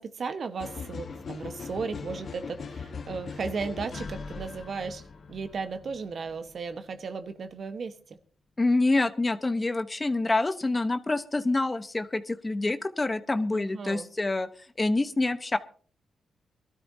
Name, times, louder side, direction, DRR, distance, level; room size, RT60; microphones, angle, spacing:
voice 1, 0.0-5.0 5.3-8.2 13.5-14.1, right 5 dB, 60° right, 1.2 m, -35 dB
sound 1, 0.6-6.5, left 5 dB, 60° left, 1.2 m, -40 dB
voice 2, 8.6-14.5 14.8-15.6, left 2 dB, 25° left, 1.0 m, -26 dB
22.5 x 12.5 x 2.8 m
cardioid pair, 60°, 0 cm